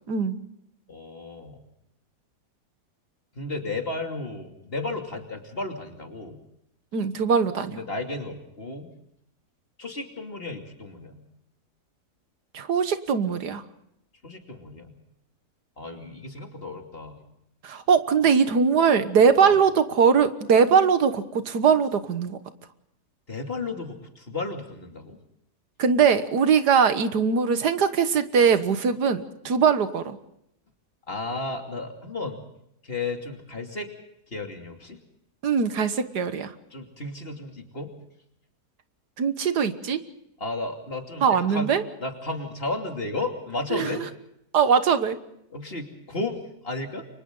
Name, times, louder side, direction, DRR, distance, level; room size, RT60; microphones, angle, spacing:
voice 1, 0.9-1.6 3.3-6.4 7.7-8.9 9.8-11.2 14.2-15.0 15.8-17.2 19.4-19.5 23.3-25.2 31.1-32.4 32.8-33.9 34.3-35.0 36.7-37.9 40.4-41.7 42.0-44.0 45.5-47.0, left 3 dB, 35° left, 3 dB, 3.0 m, -33 dB
voice 2, 6.9-7.8 12.5-13.6 17.6-22.4 25.8-30.2 35.4-36.5 39.2-40.0 41.2-41.8 43.7-44.1 44.5-45.2, right 6 dB, 80° right, 10 dB, 1.9 m, -21 dB
30.0 x 24.0 x 3.8 m, 0.78 s
omnidirectional pair, 1.7 m